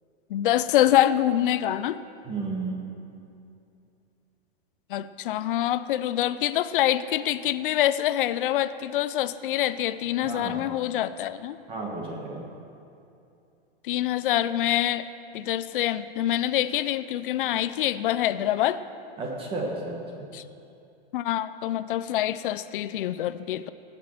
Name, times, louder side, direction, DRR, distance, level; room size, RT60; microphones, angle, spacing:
voice 1, 0.3-2.0 4.9-11.6 13.9-15.0 15.3-18.8 20.3-20.4 21.1-23.7, left 12 dB, 60° left, 14 dB, 0.6 m, -25 dB
voice 2, 2.2-2.8 10.2-10.6 11.7-12.4 19.2-20.3, right 3 dB, 15° right, -1 dB, 1.4 m, -32 dB
16.5 x 6.4 x 7.5 m, 2.6 s
supercardioid pair, 165°, 31 cm